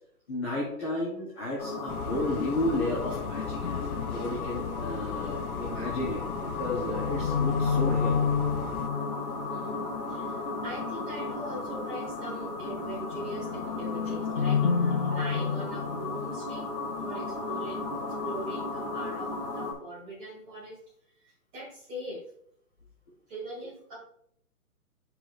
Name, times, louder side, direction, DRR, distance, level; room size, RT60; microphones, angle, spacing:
voice 1, 0.3-3.6 4.1-8.2, left 1 dB, 10° left, -10 dB, 0.8 m, -32 dB
sound 1, 1.6-19.7, left 4 dB, 40° left, 1.9 m, -31 dB
sound 2, 1.9-8.9, left 8 dB, 70° left, 0.7 m, -38 dB
voice 2, 9.5-16.7 17.0-17.8 18.2-20.8 21.2-22.2 23.3-24.0, right 1 dB, 10° right, -4 dB, 1.6 m, -41 dB
11.0 x 4.8 x 2.4 m, 0.70 s
hypercardioid pair, 165°, 45 cm